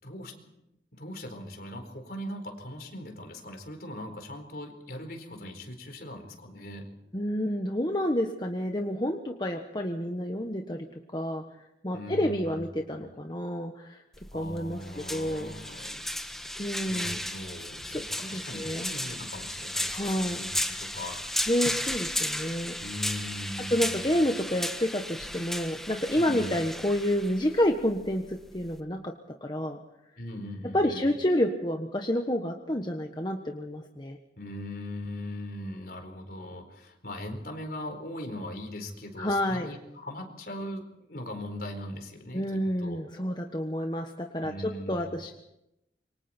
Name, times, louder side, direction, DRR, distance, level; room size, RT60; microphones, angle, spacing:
voice 1, 0.0-0.6 1.0-6.9 11.9-13.1 14.3-16.5 16.9-21.2 22.8-24.2 26.1-26.6 30.2-31.1 34.4-42.4 42.8-43.0 44.4-45.2, left 1 dB, 55° left, 5 dB, 4.5 m, -40 dB
voice 2, 7.1-11.4 11.8-14.0 14.3-14.8 15.1-15.5 16.6-17.2 17.9-18.8 19.9-20.4 21.5-22.7 23.7-29.1 29.4-29.8 30.7-34.2 39.2-39.7 42.3-45.3, equal, 25° left, 3 dB, 1.4 m, -29 dB
sound 1, 14.1-28.8, left 1 dB, ahead, 1.3 m, -35 dB
27.5 x 24.5 x 4.5 m, 0.85 s
head